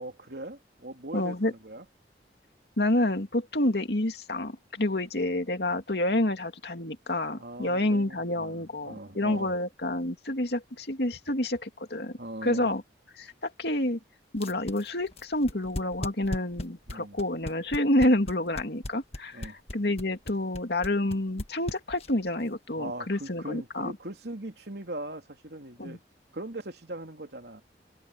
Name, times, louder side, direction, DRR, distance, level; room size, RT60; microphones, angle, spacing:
voice 1, 0.0-1.8 7.4-9.5 12.2-12.7 16.9-17.2 19.3-19.6 22.8-26.0 26.3-27.6, right 1 dB, 65° right, 3.3 m, -40 dB
voice 2, 1.1-1.5 2.8-12.8 13.2-14.0 14.3-23.9 25.8-26.0, left 1 dB, 65° left, 2.5 m, -28 dB
sound 1, 14.3-22.3, left 1 dB, 35° left, 1.6 m, -36 dB
head